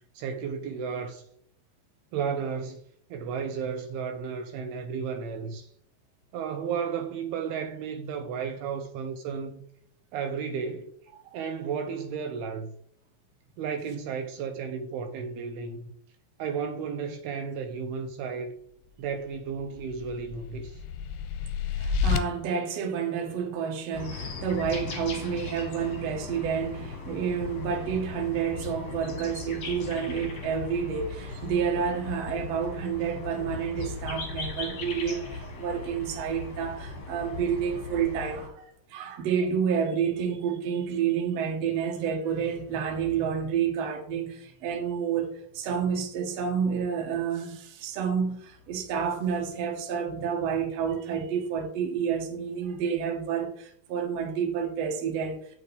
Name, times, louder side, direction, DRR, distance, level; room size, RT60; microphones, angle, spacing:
voice 1, 0.2-1.2 2.1-2.8 3.1-5.7 6.3-9.6 10.1-10.9 11.3-12.8 13.6-15.9 16.4-18.5 19.0-20.8, right 6 dB, 80° right, 2.5 m, -33 dB
sound 1, 19.4-22.2, left 6 dB, 80° left, 2.4 m, -30 dB
voice 2, 21.8-38.6 38.9-55.4, right 7 dB, 60° right, 1.8 m, -29 dB
sound 2, 23.9-38.5, left 4 dB, 50° left, 2.1 m, -38 dB
9.3 x 6.6 x 3.5 m
omnidirectional pair, 4.8 m